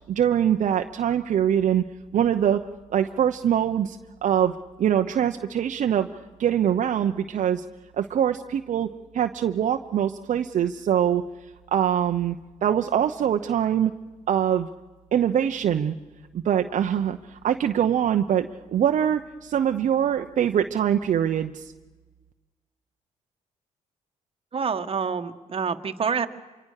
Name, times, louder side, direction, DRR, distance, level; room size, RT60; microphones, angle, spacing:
voice 1, 0.1-1.8 2.1-2.6 2.9-4.5 4.8-6.1 6.4-7.6 7.9-11.2 11.7-12.4 12.6-13.9 14.3-14.7 15.1-15.9 16.3-21.7, right 9 dB, 65° right, 5 dB, 0.9 m, -23 dB
voice 2, 24.5-26.3, right 6 dB, 45° right, 7 dB, 1.6 m, -27 dB
27.0 x 24.0 x 6.6 m, 1.2 s
cardioid pair, 75°, 14 cm